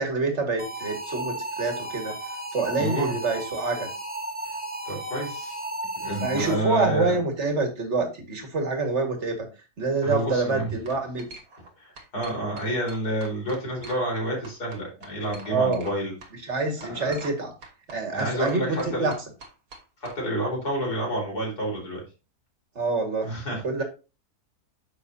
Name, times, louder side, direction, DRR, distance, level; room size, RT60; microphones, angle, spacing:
voice 1, 0.0-2.2 2.5-3.9 6.2-9.5 9.8-11.3 15.5-15.8 16.4-17.5 17.9-19.1 22.8-23.3 23.6-23.8, right 3 dB, 45° right, 4 dB, 2.1 m, -26 dB
sound 1, 0.6-6.9, right 2 dB, 10° right, 0.6 m, -34 dB
voice 2, 2.8-3.2 4.8-5.6 6.0-7.2 10.0-10.7 11.8-16.1 16.8-17.2 18.1-19.1 20.0-22.0 23.2-23.8, right 1 dB, 80° left, -1 dB, 4.9 m, -29 dB
sound 2, 10.1-10.4 10.9-11.7 12.0-14.2 14.4-16.3 16.8-17.4 17.6-20.2, right 2 dB, 75° right, 2.1 m, -45 dB
9.9 x 6.8 x 2.7 m, 0.31 s
omnidirectional pair, 1.7 m